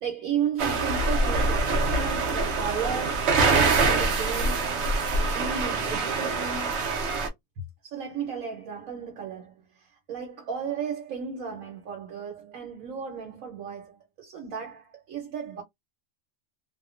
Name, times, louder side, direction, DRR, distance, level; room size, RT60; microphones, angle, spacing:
voice 1, 0.0-3.4 3.8-4.8 5.3-6.9 7.8-15.6, right 7 dB, 85° right, 1.2 m, -34 dB
sound 1, 0.6-7.3, right 3 dB, 60° right, 0.9 m, -25 dB
2.7 x 2.1 x 2.4 m
omnidirectional pair, 1.4 m